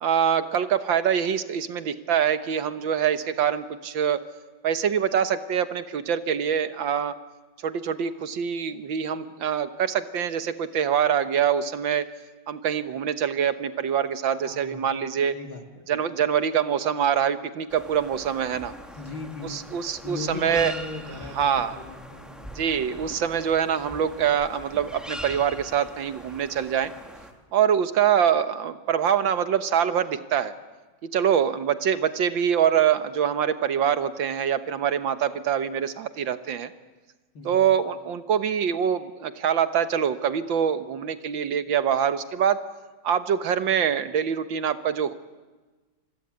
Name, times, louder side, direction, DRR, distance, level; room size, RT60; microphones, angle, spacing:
voice 1, 0.0-4.2 4.6-7.1 7.6-12.1 12.5-15.3 15.9-18.7 19.5-20.7 21.4-21.8 22.6-26.9 27.5-30.5 31.0-36.7 37.5-42.6 43.0-45.1, right 8 dB, 70° right, 12 dB, 1.9 m, -24 dB
voice 2, 14.4-15.0 15.3-15.9 18.9-19.7 20.0-22.7 37.3-37.7, left 3 dB, 70° left, 4 dB, 4.0 m, -38 dB
sound 1, 17.7-27.3, equal, ahead, 2.4 m, -42 dB
27.5 x 21.0 x 9.5 m, 1.3 s
omnidirectional pair, 2.2 m